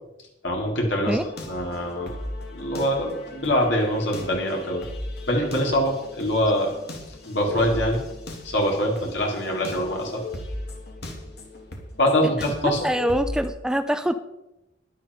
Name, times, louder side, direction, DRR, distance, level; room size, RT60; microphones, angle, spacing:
voice 1, 0.4-2.1 2.5-4.8 5.3-6.7 7.3-8.0 8.4-10.2 12.0-12.9, equal, 85° left, -1 dB, 3.9 m, -24 dB
sound 1, 1.0-13.5, left 2 dB, 65° left, 2.6 m, -37 dB
voice 2, 12.6-14.1, equal, 5° right, 9 dB, 0.5 m, -24 dB
11.5 x 11.0 x 4.9 m, 0.92 s
head